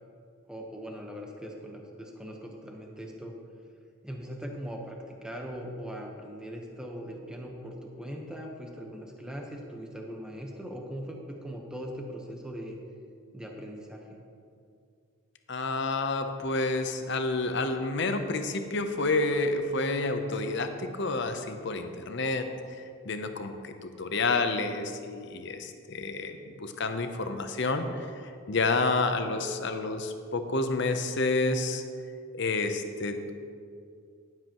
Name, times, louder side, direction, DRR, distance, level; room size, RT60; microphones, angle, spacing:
voice 1, 0.5-3.3 4.0-12.8 13.3-14.2, equal, 5° right, 0 dB, 1.0 m, -40 dB
voice 2, 15.5-22.5 23.0-28.1 28.5-31.8 32.3-33.3, left 3 dB, 55° left, 7 dB, 0.7 m, -29 dB
17.0 x 7.7 x 3.0 m, 2.3 s
head